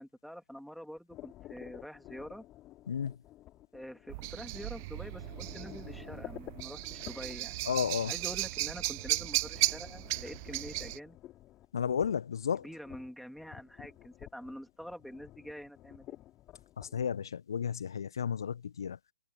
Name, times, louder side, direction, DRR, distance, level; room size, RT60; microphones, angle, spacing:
voice 1, 0.0-2.4 3.7-7.6 8.1-11.2 12.6-16.2, equal, ahead, 3.3 m, -46 dB
sound 1, 1.1-17.1, left 14 dB, 20° left, 3.7 m, -52 dB
sound 2, 4.1-11.0, right 23 dB, 35° right, 0.8 m, -35 dB
voice 2, 7.7-8.1 11.7-12.6 16.8-19.0, left 7 dB, 60° left, 1.2 m, -32 dB
figure-of-eight pair, 125°, 3 cm